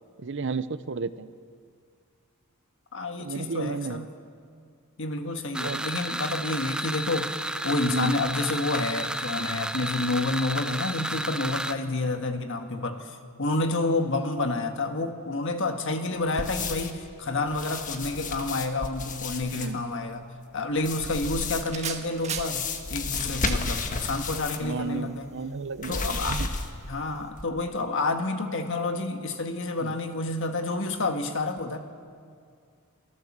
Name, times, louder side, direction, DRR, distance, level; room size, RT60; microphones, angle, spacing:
voice 1, 0.2-1.3 3.2-4.1 5.5-5.9 7.8-8.2 19.5-19.8 24.6-26.5 29.8-29.9, right 4 dB, 55° right, 14 dB, 0.7 m, -33 dB
voice 2, 2.9-4.1 5.0-20.3 20.5-25.3 25.9-26.4 26.9-31.8, left 2 dB, 60° left, 6 dB, 1.7 m, -29 dB
sound 1, 5.5-11.7, right 1 dB, 5° right, 0.5 m, -32 dB
sound 2, 16.4-17.0 17.5-19.7 20.8-21.8 22.3-24.7 25.0-25.1 25.8-26.9 27.3-27.4, left 3 dB, 35° left, 1.4 m, -32 dB
sound 3, 20.9-27.3, right 7 dB, 30° right, 1.4 m, -42 dB
28.5 x 14.5 x 7.4 m, 2.2 s
head